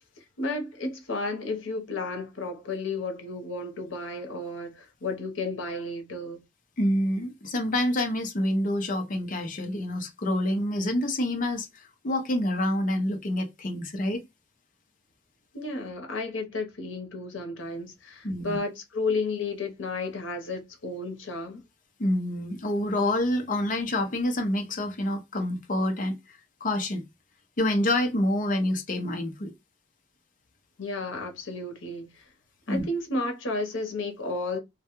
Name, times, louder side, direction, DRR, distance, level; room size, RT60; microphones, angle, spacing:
voice 1, 0.4-6.4 15.5-21.6 30.8-32.3 32.7-34.6, left 2 dB, 90° left, 0.8 m, -32 dB
voice 2, 6.8-14.2 18.2-18.6 22.0-26.2 26.6-27.0 27.6-29.5 32.7-32.8, left 1 dB, 45° left, 0.6 m, -27 dB
2.2 x 2.2 x 2.9 m
head